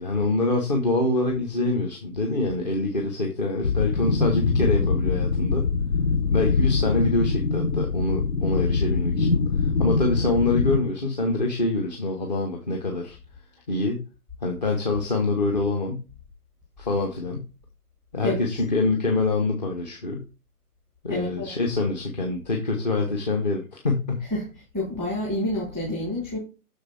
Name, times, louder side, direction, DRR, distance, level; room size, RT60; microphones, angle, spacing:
voice 1, 0.0-5.7 6.3-9.3 9.6-13.2 13.7-14.0 14.4-16.0 16.8-17.5 18.1-20.2 21.0-24.2, left 2 dB, 30° left, 1.0 m, -25 dB
sound 1, 3.6-10.8, left 4 dB, 85° left, 1.2 m, -23 dB
voice 2, 21.1-21.5 24.2-24.5 24.7-26.4, left 1 dB, 10° left, 1.5 m, -28 dB
6.4 x 4.8 x 4.2 m
figure-of-eight pair, 145°, 46 cm